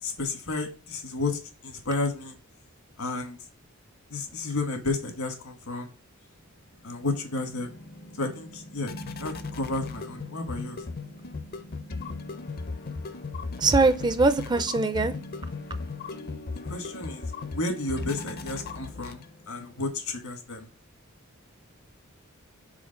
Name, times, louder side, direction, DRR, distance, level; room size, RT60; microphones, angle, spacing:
voice 1, 0.0-2.3 3.0-3.4 4.1-5.9 6.8-7.7 8.1-8.9 9.2-10.8 16.7-20.7, left 3 dB, 80° left, 1.7 m, -32 dB
sound 1, 6.7-19.6, left 3 dB, 45° left, 0.6 m, -37 dB
voice 2, 13.6-15.1, right 3 dB, 20° right, 0.4 m, -22 dB
5.0 x 4.1 x 5.2 m
head